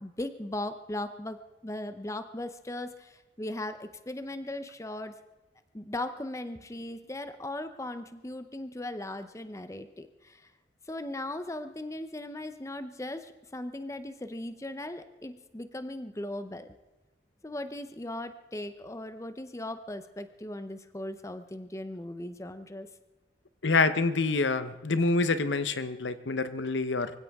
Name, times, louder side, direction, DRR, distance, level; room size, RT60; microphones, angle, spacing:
voice 1, 0.0-1.4 1.6-5.1 5.7-10.5 10.9-16.7 17.4-22.9, left 1 dB, 15° left, 10 dB, 0.7 m, -38 dB
voice 2, 23.6-27.1, left 3 dB, 85° left, 12 dB, 0.9 m, -27 dB
24.5 x 15.5 x 3.6 m, 1.1 s
head